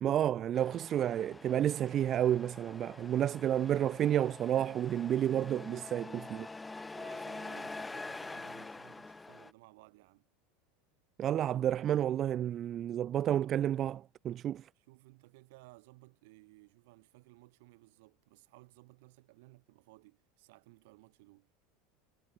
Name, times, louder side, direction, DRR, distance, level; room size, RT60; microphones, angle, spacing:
voice 1, 0.0-6.5 11.2-14.6, right 11 dB, 30° right, 0.4 m, -30 dB
Truck, 0.5-9.5, left 3 dB, 10° left, 3.5 m, -46 dB
voice 2, 5.9-6.2 6.9-10.3 14.7-21.5, right 23 dB, 70° right, 6.2 m, -59 dB
supercardioid pair, 155°, 0 cm